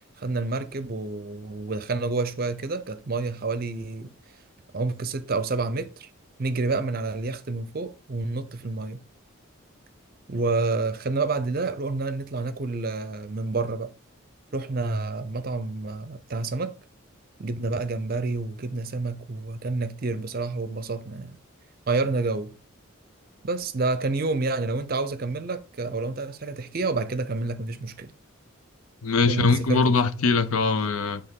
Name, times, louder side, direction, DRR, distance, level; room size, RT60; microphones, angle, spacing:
voice 1, 0.2-4.1 4.7-6.1 6.4-9.0 10.3-13.9 14.5-16.7 17.4-21.4 21.9-22.5 23.4-28.1 29.3-30.0, right 3 dB, 45° right, 0.5 m, -29 dB
voice 2, 29.0-31.2, left 4 dB, 85° left, 0.6 m, -22 dB
8.0 x 3.4 x 3.6 m
head